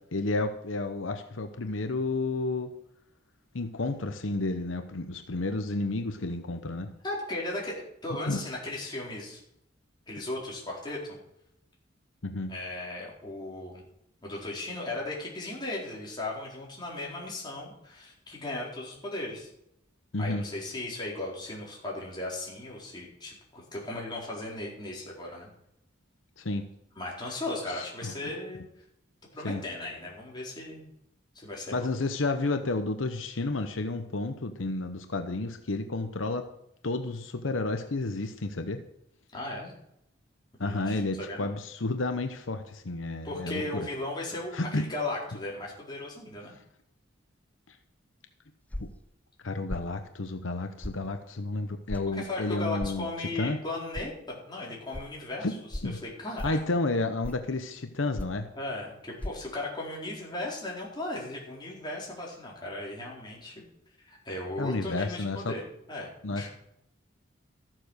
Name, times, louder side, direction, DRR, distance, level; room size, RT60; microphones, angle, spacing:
voice 1, 0.1-2.7 3.5-6.9 8.3-8.4 12.2-12.5 20.1-20.4 26.4-26.7 27.7-28.1 29.4-29.6 31.7-36.4 36.8-38.8 40.6-43.9 44.5-44.8 48.8-48.9 49.4-53.1 53.4-53.6 55.4-55.5 55.8-56.0 56.4-58.5 64.6-65.5 66.2-66.5, left 2 dB, 85° left, 7 dB, 0.9 m, -31 dB
voice 2, 7.0-7.8 8.0-9.4 10.1-11.2 12.5-13.8 14.2-19.5 20.2-25.5 27.0-28.6 29.3-30.8 31.3-31.9 39.3-39.7 40.6-41.5 43.2-46.6 52.1-56.6 58.5-63.6 64.0-66.5, left 2 dB, 25° left, -3 dB, 4.3 m, -37 dB
sound 1, 48.7-49.0 49.7-49.9 50.8-51.0 51.9-52.1 52.8-53.0 53.9-54.1 54.9-55.0 55.7-55.9 56.4-56.6 57.2-57.5 58.2-58.4 59.2-59.3, left 1 dB, 10° left, 0.4 m, -36 dB
13.5 x 7.6 x 6.5 m, 0.78 s
head